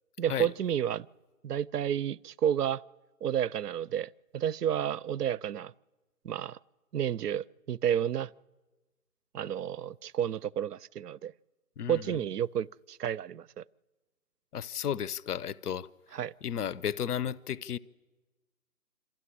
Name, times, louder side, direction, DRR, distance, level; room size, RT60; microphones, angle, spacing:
voice 1, 0.2-1.1 1.4-2.8 3.2-5.7 6.2-6.6 6.9-8.3 9.3-11.3 11.9-13.6 16.1-16.3, right 9 dB, 80° right, 0.6 m, -31 dB
voice 2, 11.8-12.2 14.5-17.8, left 9 dB, 75° left, 0.7 m, -34 dB
26.0 x 13.5 x 9.8 m
hypercardioid pair, 175°, 46 cm